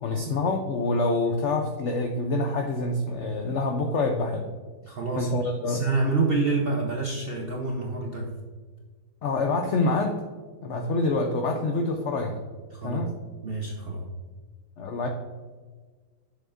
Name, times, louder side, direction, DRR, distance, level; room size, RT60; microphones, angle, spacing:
voice 1, 0.0-4.5 5.2-5.9 9.2-10.2 10.6-12.4 12.8-13.1 14.8-15.1, left 2 dB, 90° left, 4 dB, 0.6 m, -26 dB
voice 2, 4.8-8.3 12.7-13.1 13.4-14.1, right 3 dB, 65° right, 0 dB, 0.5 m, -28 dB
7.2 x 6.7 x 2.4 m, 1.5 s
omnidirectional pair, 1.9 m